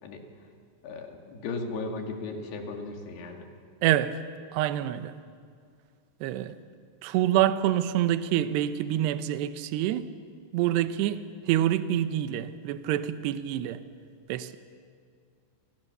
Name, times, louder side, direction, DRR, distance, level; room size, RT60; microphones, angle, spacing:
voice 1, 0.0-0.5 0.8-3.5, left 3 dB, 60° left, 4.3 m, -36 dB
voice 2, 3.8-4.2 4.5-5.2 6.2-6.6 7.0-10.1 10.5-13.8 14.3-14.6, right 12 dB, 75° right, 2.8 m, -26 dB
29.0 x 28.5 x 6.8 m
omnidirectional pair, 5.6 m